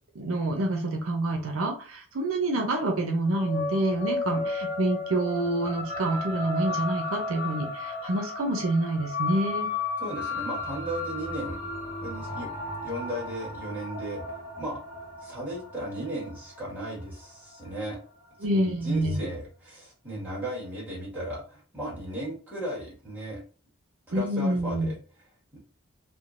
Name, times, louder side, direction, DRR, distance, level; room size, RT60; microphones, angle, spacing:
voice 1, 0.1-9.7 18.4-19.2 24.1-24.9, right 1 dB, 75° right, 2 dB, 0.6 m, -27 dB
sound 1, 3.3-18.0, left 2 dB, 45° left, 1.1 m, -34 dB
voice 2, 10.0-11.6 12.0-12.5 12.8-14.2 14.6-14.8 15.2-18.0 18.5-23.4 24.1-24.9, right 1 dB, 10° right, -8 dB, 1.5 m, -35 dB
3.7 x 2.2 x 2.5 m, 0.39 s
head